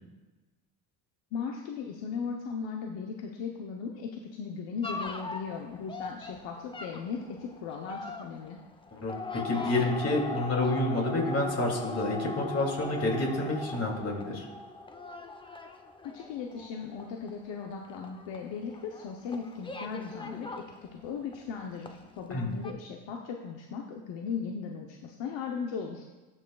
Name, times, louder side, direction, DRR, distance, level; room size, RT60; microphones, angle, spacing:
voice 1, 1.3-8.6 16.0-20.6 20.9-26.1, left 6 dB, 65° left, 1 dB, 0.9 m, -37 dB
sound 1, 4.8-21.5 21.8-22.4 22.6-22.7, left 3 dB, 10° left, 0.6 m, -40 dB
voice 2, 9.0-14.4 22.3-22.5, left 2 dB, 30° left, 0 dB, 2.7 m, -29 dB
16.0 x 5.9 x 2.3 m, 1.2 s
supercardioid pair, 95°, 48 cm